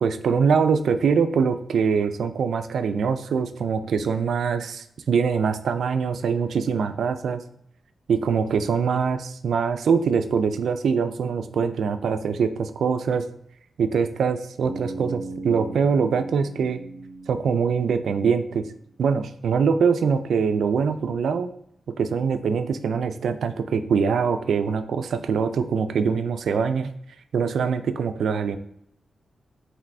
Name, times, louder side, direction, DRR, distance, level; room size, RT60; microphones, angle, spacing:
voice 1, 0.0-7.4 8.1-13.2 13.8-16.8 17.3-18.6 19.0-21.5 22.0-26.9 27.3-28.6, right 6 dB, 80° right, 9 dB, 0.3 m, -23 dB
Bass guitar, 14.6-18.6, right 2 dB, 30° left, 0.9 m, -38 dB
5.3 x 3.0 x 2.6 m, 0.72 s
wide cardioid pair, 180°, 0 cm